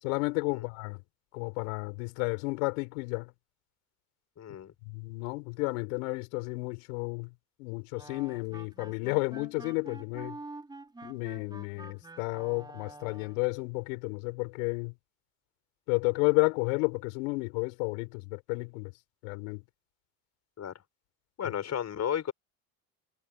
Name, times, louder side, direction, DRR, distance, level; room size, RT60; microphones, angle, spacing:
voice 1, 0.0-1.0 1.3-3.3 4.8-7.3 7.6-10.4 11.0-14.9 15.9-18.9 19.2-19.6 21.4-21.5, left 30 dB, 75° left, 4.6 m, -32 dB
voice 2, 4.4-4.7 20.6-20.7 21.4-22.3, left 9 dB, 40° left, 5.6 m, -33 dB
sound 1, 7.9-13.5, right 2 dB, 10° right, 3.1 m, -47 dB
supercardioid pair, 90°, 39 cm